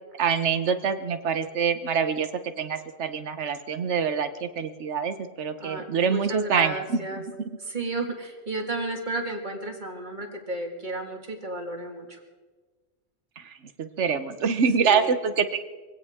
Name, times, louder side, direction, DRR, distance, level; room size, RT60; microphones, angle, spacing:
voice 1, 0.2-2.3 2.6-7.0 13.4-13.5 13.8-15.6, right 6 dB, 90° right, 10 dB, 1.2 m, -25 dB
voice 2, 5.6-7.2 7.6-12.2 14.8-15.2, right 2 dB, 45° right, 3 dB, 2.1 m, -33 dB
23.0 x 17.0 x 3.6 m, 1.4 s
omnidirectional pair, 1.2 m